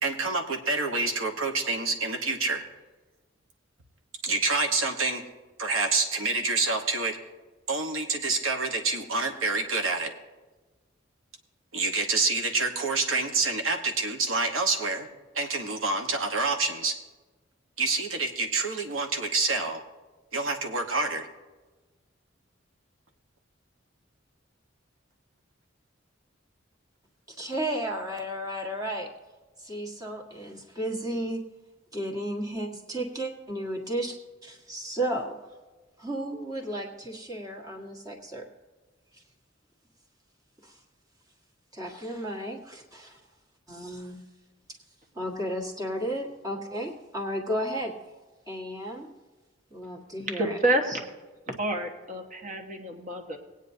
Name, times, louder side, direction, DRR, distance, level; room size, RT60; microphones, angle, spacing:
voice 1, 0.0-2.6 4.2-5.2 5.6-7.2 7.7-10.1 11.7-15.1 15.3-16.9 17.8-19.8 20.3-21.3, right 3 dB, 90° right, 3 dB, 1.2 m, -27 dB
voice 2, 27.3-29.1 29.6-31.4 31.9-34.2 34.4-35.4 36.0-38.4 39.1-39.2 40.6-40.8 41.7-43.2 43.7-44.2 45.1-48.0 48.5-49.1 49.7-50.6, right 1 dB, 20° right, -1 dB, 1.6 m, -33 dB
voice 3, 50.3-51.0 51.5-53.4, right 1 dB, 40° right, 3 dB, 1.3 m, -28 dB
20.0 x 9.1 x 2.7 m, 1.3 s
head